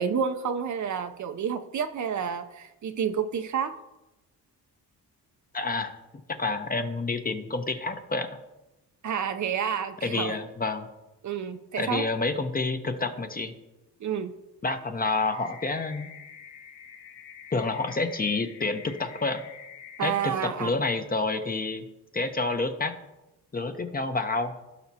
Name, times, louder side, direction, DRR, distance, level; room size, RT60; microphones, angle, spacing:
voice 1, 0.0-3.8 9.0-10.4 11.2-12.0 14.0-14.4 20.0-20.7, right 7 dB, 50° right, 8 dB, 0.7 m, -29 dB
voice 2, 5.5-5.9 6.3-8.3 10.0-10.9 11.8-13.5 14.6-16.1 17.5-19.4 20.0-21.8 22.1-22.9 23.5-24.5, left 3 dB, 25° left, 7 dB, 0.8 m, -28 dB
sound 1, 15.2-20.2, left 7 dB, 90° left, 0.9 m, -47 dB
16.5 x 5.7 x 2.8 m, 0.99 s
cardioid pair, 90°, 37 cm